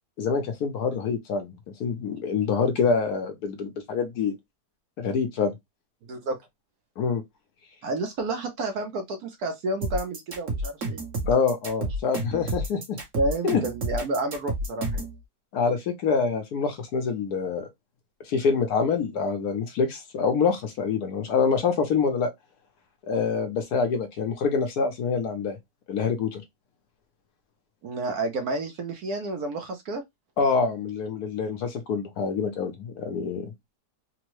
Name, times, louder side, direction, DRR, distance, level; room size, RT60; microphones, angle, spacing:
voice 1, 0.2-1.5 1.8-4.3 5.0-5.5 7.0-7.2 11.2-13.0 13.4-13.6 15.5-17.7 18.3-22.3 23.1-25.6 25.9-26.4 30.4-33.5, left 5 dB, 70° left, 1.1 m, -26 dB
voice 2, 6.1-6.4 7.8-11.0 13.2-15.1 27.8-30.0, right 2 dB, 65° right, 1.1 m, -30 dB
sound 1, 9.8-15.1, right 1 dB, 50° right, 1.3 m, -30 dB
3.5 x 2.0 x 3.0 m
omnidirectional pair, 1.9 m